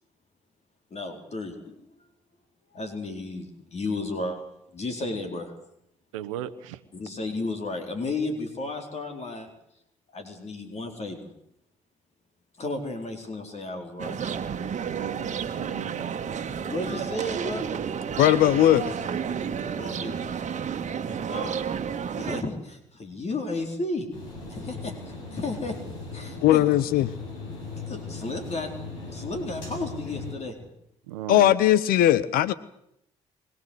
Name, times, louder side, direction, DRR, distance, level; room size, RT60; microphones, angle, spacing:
voice 1, 0.9-1.8 2.7-4.4 4.7-5.5 6.9-9.5 10.1-11.3 12.6-14.2 16.7-17.6 19.8-20.2 21.3-21.6 22.1-24.1 24.5-24.9 25.3-25.7 26.1-26.6 27.8-28.7 29.1-30.7, left 2 dB, 40° left, 4 dB, 4.2 m, -33 dB
voice 2, 6.1-6.8 14.8-16.1 19.9-20.0 31.1-31.5, right 12 dB, 80° right, 13 dB, 1.1 m, -37 dB
sound 1, 14.0-22.4, right 7 dB, 50° right, 1.7 m, -31 dB
voice 3, 18.2-19.0 26.4-27.1 31.3-32.5, left 13 dB, 65° left, 18 dB, 0.9 m, -19 dB
sound 2, 24.1-30.3, left 3 dB, 85° left, 7.5 m, -38 dB
24.0 x 17.5 x 8.2 m, 0.76 s
hypercardioid pair, 50°, 16 cm